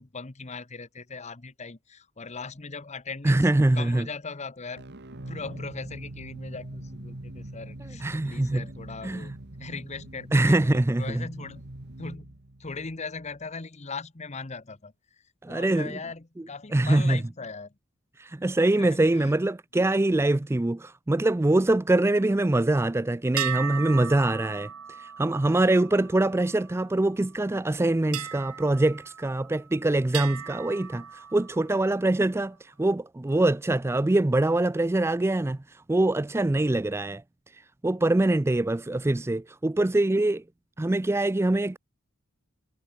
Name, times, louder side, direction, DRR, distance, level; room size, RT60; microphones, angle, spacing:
voice 1, 0.0-3.5 3.7-4.8 5.3-9.3 9.6-11.6 12.0-14.9 15.5-17.7 18.8-19.3, left 4 dB, 30° left, 1.0 m, -39 dB
voice 2, 3.2-4.1 8.0-8.6 9.0-9.4 10.3-11.3 15.4-15.9 16.7-17.2 18.2-37.2 37.8-40.4 40.8-41.8, right 2 dB, 10° right, 0.3 m, -24 dB
sound 1, 4.8-13.4, right 1 dB, 50° right, 1.8 m, -43 dB
sound 2, 23.4-27.0 28.1-29.7 30.1-31.8, right 9 dB, 80° right, 1.9 m, -37 dB
head